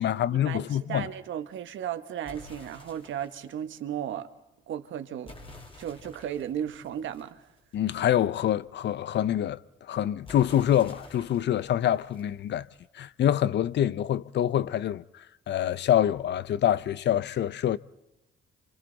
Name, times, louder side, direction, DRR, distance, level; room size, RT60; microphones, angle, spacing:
voice 1, 0.0-1.1 7.7-12.7 12.9-17.8, left 11 dB, 60° left, 0.7 m, -26 dB
voice 2, 0.9-4.3 4.7-5.3 5.8-7.5, right 10 dB, 75° right, 1.4 m, -35 dB
sound 1, 2.2-3.5 5.2-8.0 10.2-13.0, left 2 dB, 25° left, 3.2 m, -50 dB
30.0 x 26.0 x 4.0 m
cardioid pair, 90°, 20 cm